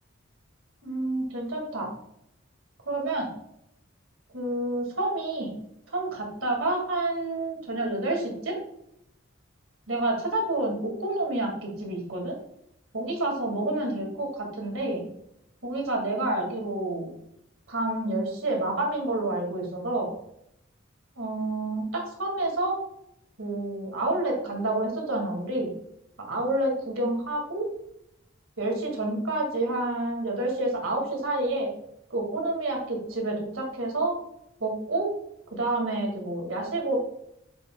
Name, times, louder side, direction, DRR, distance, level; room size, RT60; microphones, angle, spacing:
voice 1, 0.8-1.9 2.9-3.3 4.3-5.5 5.9-8.6 9.9-12.3 12.9-15.0 15.6-17.1 17.7-20.1 21.2-22.8 23.4-25.7 26.2-27.7 28.6-31.7 32.1-34.1 34.6-35.1 35.5-37.0, right 2 dB, 85° right, 0 dB, 2.2 m, -29 dB
7.2 x 5.9 x 2.3 m, 0.76 s
head